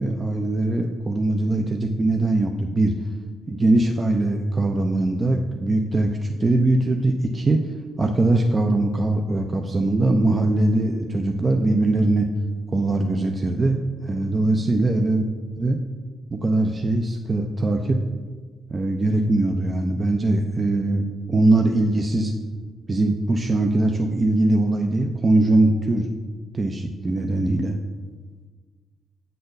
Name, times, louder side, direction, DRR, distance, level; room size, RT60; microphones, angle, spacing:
voice 1, 0.0-3.1 3.5-12.3 12.7-15.2 15.6-15.8 16.3-18.0 18.7-22.3 22.9-26.1 26.5-27.8, right 2 dB, 30° right, 4 dB, 0.6 m, -21 dB
7.9 x 4.3 x 6.5 m, 1.4 s
cardioid pair, 90°, 0 cm